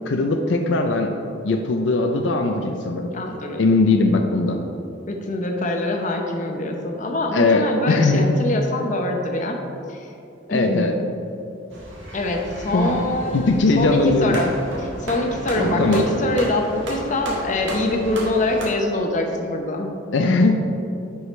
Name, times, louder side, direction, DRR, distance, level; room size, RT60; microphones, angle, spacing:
voice 1, 0.1-1.1 1.4-3.1 3.6-4.6 7.3-8.4 10.5-11.0 12.7-13.0 13.3-14.4 15.8-16.1 20.1-20.5, left 3 dB, 75° left, 4 dB, 0.5 m, -19 dB
voice 2, 3.1-3.6 5.1-9.6 9.9-10.1 10.5-10.9 12.1-14.5 14.8-20.0, left 1 dB, 40° left, 2 dB, 0.8 m, -24 dB
sound 1, 11.7-18.7, right 1 dB, 80° right, 1.7 m, -31 dB
10.0 x 4.8 x 3.2 m, 2.7 s
head